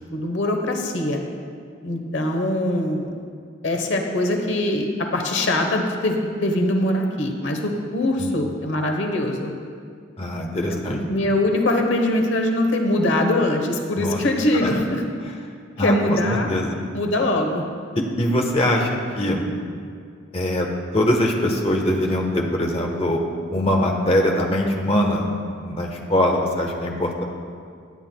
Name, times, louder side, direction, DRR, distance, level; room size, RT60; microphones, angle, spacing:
voice 1, 0.1-1.2 1.8-3.2 3.6-4.9 5.1-9.5 10.7-15.0 15.8-16.5 16.9-17.6, left 1 dB, 65° left, 3 dB, 1.0 m, -22 dB
voice 2, 10.2-11.0 14.0-14.2 14.6-14.7 15.8-16.2 16.5-16.8 18.2-18.9 19.1-19.4 20.3-20.7 20.9-23.2 23.5-25.3 25.6-27.2, left 1 dB, 30° left, 1 dB, 1.0 m, -22 dB
16.5 x 10.0 x 2.2 m, 2.2 s
head